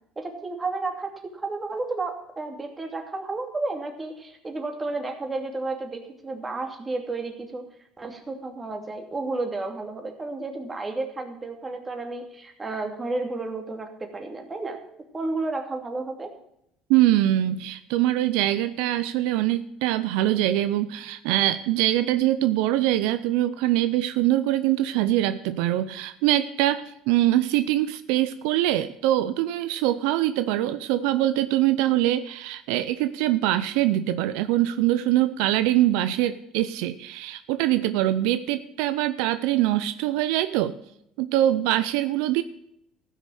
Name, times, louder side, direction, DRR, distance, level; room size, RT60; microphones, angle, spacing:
voice 1, 0.2-7.6 8.0-14.8 15.1-16.3, right 3 dB, 20° right, 4 dB, 2.6 m, -32 dB
voice 2, 16.9-40.7 41.2-42.4, right 14 dB, 80° right, 12 dB, 0.5 m, -23 dB
15.0 x 6.4 x 6.4 m, 0.76 s
supercardioid pair, 100°, 0 cm